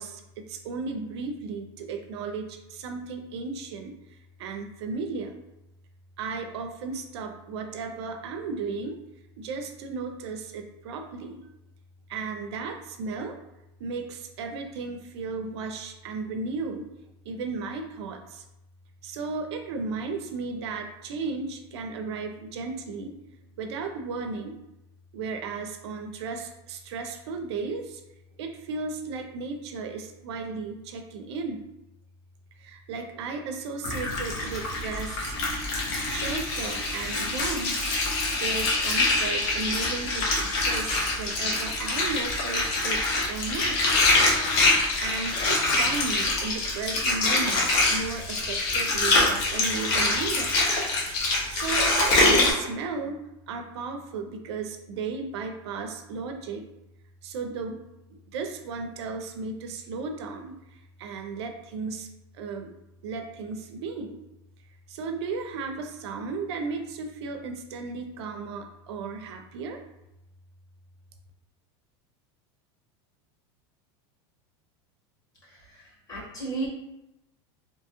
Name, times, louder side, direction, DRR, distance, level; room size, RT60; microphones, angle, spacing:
voice 1, 0.0-3.9 4.4-5.4 6.2-9.0 9.4-11.4 12.1-13.4 13.8-16.9 17.3-18.4 19.0-23.1 23.6-24.6 25.1-28.0 28.4-31.6 32.6-35.3 36.1-37.8 38.4-43.0 43.3-43.8 45.0-50.8 51.5-53.2 53.5-56.6 57.2-57.8 58.1-60.5 61.0-62.1 62.4-62.7 63.0-64.2 64.9-69.8, right 4 dB, 85° right, 4 dB, 0.4 m, -35 dB
Water, 33.8-52.5, left 2 dB, 55° left, 0.8 m, -25 dB
voice 2, 75.7-76.7, right 3 dB, 25° left, -6 dB, 1.2 m, -34 dB
2.7 x 2.3 x 2.9 m, 0.91 s
supercardioid pair, 140°, 14 cm